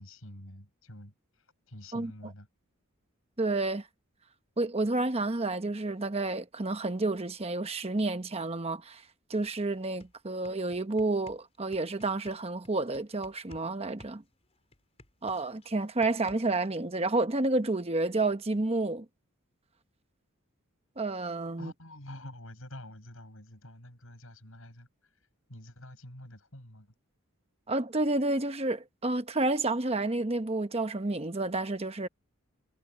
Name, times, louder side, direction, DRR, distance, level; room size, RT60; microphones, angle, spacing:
voice 1, 0.0-2.5 21.6-24.9 25.5-26.9, left 1 dB, 70° left, 7.0 m, -47 dB
voice 2, 3.4-3.9 4.6-9.0 9.3-14.2 15.2-19.0 21.0-21.7 27.7-32.1, right 2 dB, 30° right, 1.0 m, -30 dB
sound 1, 9.4-9.5 9.8-13.7 14.0-16.7, left 1 dB, 30° left, 4.6 m, -55 dB
head